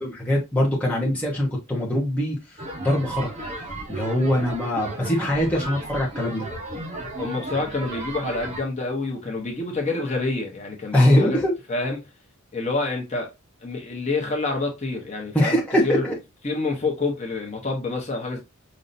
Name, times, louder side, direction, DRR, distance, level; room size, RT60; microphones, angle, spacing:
voice 1, 0.0-3.3 3.9-6.5 10.9-11.5 15.3-16.2, left 1 dB, 5° left, 0.9 m, -22 dB
sound 1, 2.6-8.6, right 2 dB, 30° right, 1.0 m, -34 dB
voice 2, 7.2-11.4 11.7-12.0 12.5-13.3 13.6-16.1 16.4-18.4, left 3 dB, 30° left, 0.9 m, -27 dB
5.2 x 2.7 x 2.6 m
head